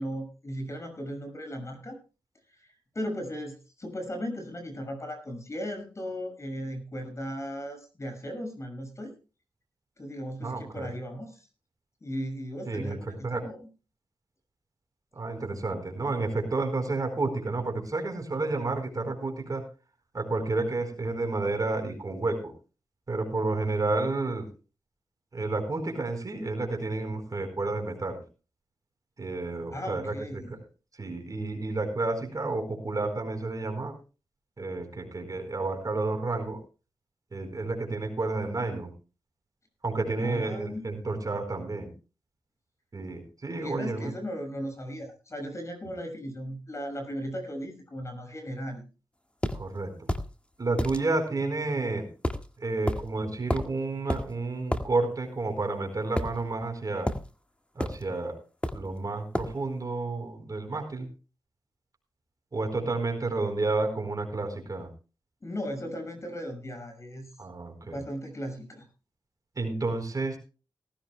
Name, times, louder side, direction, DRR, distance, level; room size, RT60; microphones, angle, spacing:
voice 1, 0.0-2.0 2.6-9.1 10.0-11.5 12.0-13.7 29.7-30.6 40.2-40.9 43.6-48.8 65.4-67.3 67.8-68.9, equal, 35° left, 5 dB, 6.3 m, -37 dB
voice 2, 10.4-10.9 12.7-13.0 13.2-13.4 15.1-19.6 20.1-22.5 23.1-24.5 25.3-28.2 29.2-30.6 31.0-33.9 34.6-36.6 37.3-38.9 39.8-41.9 42.9-44.2 49.5-50.1 50.6-52.1 52.6-57.1 57.7-58.4 58.7-61.1 62.5-64.9 67.4-68.0 69.6-70.4, right 3 dB, 45° right, 5 dB, 4.4 m, -30 dB
sound 1, 49.4-49.6 50.1-50.3 50.8-51.0 52.2-52.5 52.9-53.0 53.5-53.7 54.1-54.3 54.7-54.9 56.2-56.7 57.1-57.3 57.8-58.0 58.6-58.9 59.3-59.6, left 1 dB, 15° left, 1.6 m, -29 dB
18.5 x 16.0 x 2.2 m, 0.34 s
cardioid pair, 75°, 9 cm